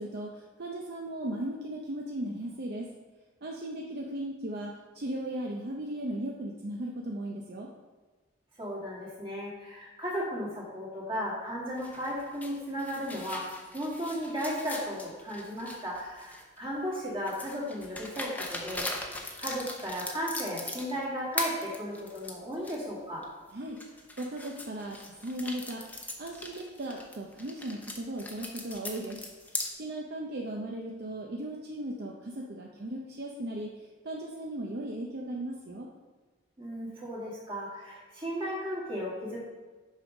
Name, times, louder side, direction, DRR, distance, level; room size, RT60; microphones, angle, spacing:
voice 1, 0.0-2.9 3.4-7.7 23.5-23.8 24.2-25.9 26.2-29.2 29.7-35.9, right 1 dB, 55° right, -1 dB, 0.6 m, -37 dB
voice 2, 8.6-19.1 19.4-23.3 36.6-39.4, equal, 30° right, -5 dB, 2.1 m, -35 dB
sound 1, 11.8-16.6 17.3-21.0 21.3-22.8 23.2-23.3 23.8-29.7, left 2 dB, 10° left, 0.7 m, -40 dB
6.4 x 5.3 x 5.0 m, 1.3 s
head